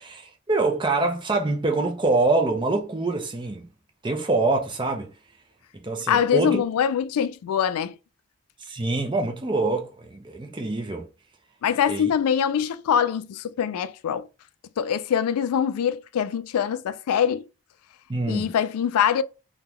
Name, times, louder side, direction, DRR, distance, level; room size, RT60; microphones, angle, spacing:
voice 1, 0.0-3.7 4.0-5.1 5.8-6.6 8.6-11.1 11.9-12.1 18.1-18.5, right 3 dB, 20° right, 0.5 m, -25 dB
voice 2, 6.1-8.0 11.6-14.3 14.8-17.4 18.3-19.2, left 8 dB, 85° left, 0.3 m, -23 dB
3.6 x 2.3 x 2.9 m
head